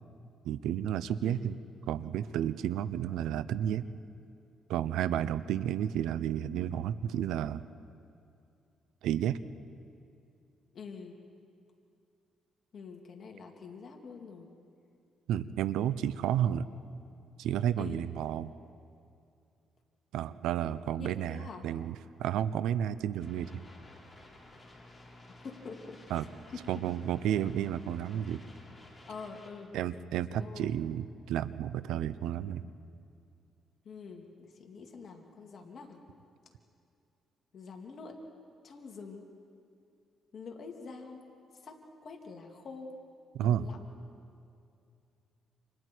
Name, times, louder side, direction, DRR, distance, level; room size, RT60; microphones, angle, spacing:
voice 1, 0.4-1.6 1.9-3.9 4.7-7.6 9.0-9.4 15.3-16.7 17.4-18.5 20.1-23.5 26.1-26.3 26.7-28.4 29.7-32.6 43.3-43.7, right 10 dB, 85° right, 14 dB, 0.7 m, -31 dB
voice 2, 10.7-11.2 12.7-14.5 17.8-18.0 21.0-21.6 25.3-26.8 29.1-29.7 30.4-30.8 33.8-36.0 37.5-38.2 38.6-39.3 40.3-41.3 41.5-43.0 43.4-43.8, left 4 dB, 55° left, 2 dB, 2.8 m, -46 dB
sound 1, 23.2-29.5, left 1 dB, 20° left, 5.4 m, -54 dB
29.5 x 28.0 x 4.7 m, 2.5 s
cardioid pair, 90°, 0 cm